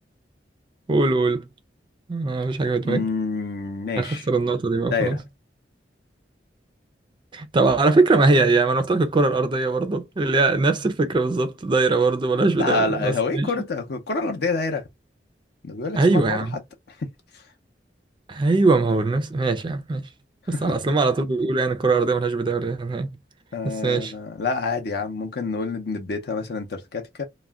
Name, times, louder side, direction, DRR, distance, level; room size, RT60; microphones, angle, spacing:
voice 1, 0.9-1.5 2.1-3.1 4.0-5.2 7.3-13.5 15.9-16.6 18.3-20.0 20.6-23.2 23.6-24.1, right 3 dB, 25° right, 0.4 m, -21 dB
voice 2, 2.8-4.3 4.9-5.2 12.6-14.8 15.6-16.4 17.0-17.1 20.5-20.7 23.5-27.2, left 3 dB, 65° left, 0.6 m, -27 dB
2.3 x 2.1 x 3.4 m
head